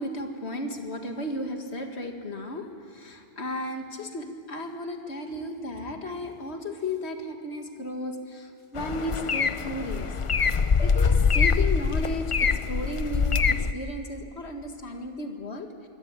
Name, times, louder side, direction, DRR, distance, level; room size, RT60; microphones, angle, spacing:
voice 1, 0.0-10.1 10.4-15.9, left 1 dB, 60° left, 4 dB, 2.3 m, -34 dB
sound 1, 8.8-13.7, left 5 dB, 40° left, 0.4 m, -24 dB
24.5 x 16.5 x 8.7 m, 2.6 s
omnidirectional pair, 1.2 m